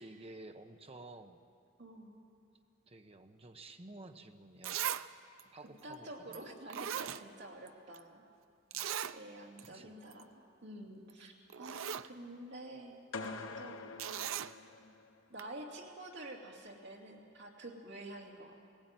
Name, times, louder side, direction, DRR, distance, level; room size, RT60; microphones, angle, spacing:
voice 1, 0.0-1.4 2.9-4.8 5.5-6.4 8.7-8.9 9.6-9.9, right 2 dB, 30° right, 6 dB, 0.9 m, -52 dB
voice 2, 1.8-2.2 5.8-8.2 9.1-14.2 15.3-18.5, right 1 dB, 55° right, -1 dB, 2.8 m, -49 dB
Zipper (clothing), 4.1-4.2 4.6-5.1 5.4-5.5 6.3-6.4 6.7-7.7 7.9-8.0 8.7-9.2 9.6-9.7 10.0-10.2 11.1-11.2 11.5-12.1 14.0-14.5 15.4-15.5, right 10 dB, 75° right, 0.5 m, -38 dB
sound 1, 13.1-15.2, left 4 dB, 70° left, 1.0 m, -45 dB
18.5 x 17.0 x 9.1 m, 2.3 s
head